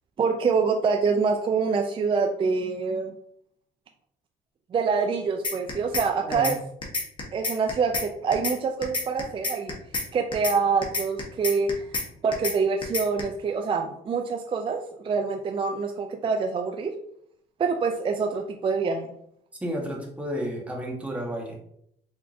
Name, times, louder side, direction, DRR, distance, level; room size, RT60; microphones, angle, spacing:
voice 1, 0.2-3.2 4.7-6.6 7.3-9.8 10.1-16.9 17.6-19.1, right 5 dB, 30° right, 4 dB, 0.4 m, -26 dB
sound 1, 5.4-6.1 6.3-6.6 6.8-8.1 8.3-8.6 8.8-10.1 10.3-10.6 10.8-12.1 12.3-12.6 12.8-13.2, left 3 dB, 30° left, 1.2 m, -28 dB
voice 2, 19.6-21.6, equal, 10° right, -1 dB, 1.3 m, -31 dB
4.4 x 3.6 x 2.6 m, 0.70 s
cardioid pair, 110°, 17 cm